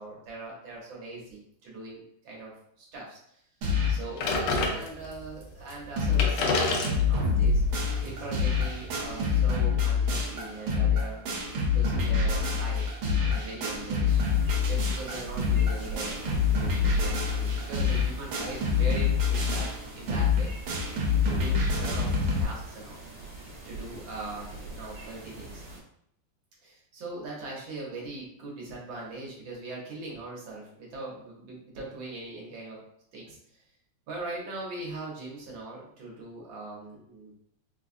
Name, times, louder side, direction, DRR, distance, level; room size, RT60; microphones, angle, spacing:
voice 1, 0.0-2.5 2.8-3.4 3.9-6.7 7.0-7.6 8.0-11.2 11.7-12.9 13.2-14.2 14.7-20.5 20.9-23.0 23.6-25.6 26.6-32.8 33.1-33.6 34.1-37.3, right 2 dB, 65° right, -3 dB, 1.7 m, -41 dB
sound 1, 3.6-4.1 4.5-4.6 4.8-4.9 5.4-5.5 5.7-6.3 6.6-22.4, left 5 dB, 80° right, 1.6 m, -26 dB
sound 2, 4.2-5.3 5.8-5.9 6.1-9.1, left 3 dB, 90° left, 1.5 m, -30 dB
sound 3, 14.1-25.8, right 2 dB, 50° right, 1.4 m, -43 dB
4.1 x 2.3 x 2.5 m, 0.70 s
omnidirectional pair, 2.3 m